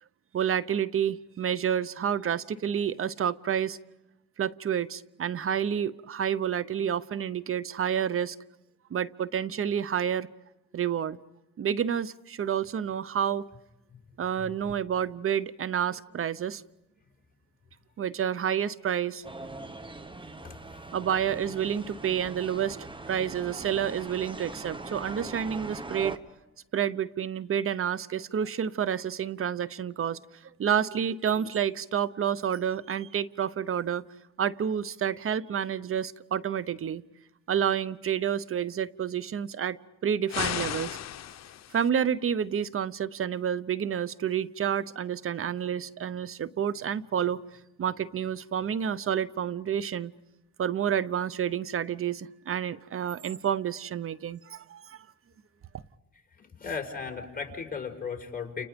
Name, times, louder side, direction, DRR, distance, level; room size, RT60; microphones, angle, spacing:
voice 1, 0.3-3.8 4.4-8.4 8.9-10.3 10.7-11.2 11.6-13.4 14.2-16.6 18.0-19.2 20.9-22.8 23.1-26.2 26.7-30.2 30.6-34.0 34.4-37.0 37.5-39.8 40.0-41.0 41.7-47.4 47.8-50.1 50.6-55.0, right 8 dB, 45° right, 0.8 m, -29 dB
sound 1, 19.2-26.2, right 2 dB, 15° right, 1.3 m, -41 dB
voice 2, 20.4-20.8 56.4-58.7, left 5 dB, 30° left, 4.9 m, -37 dB
sound 2, 40.3-41.9, left 11 dB, 60° left, 0.9 m, -34 dB
30.0 x 29.0 x 5.2 m
cardioid pair, 90°, 30 cm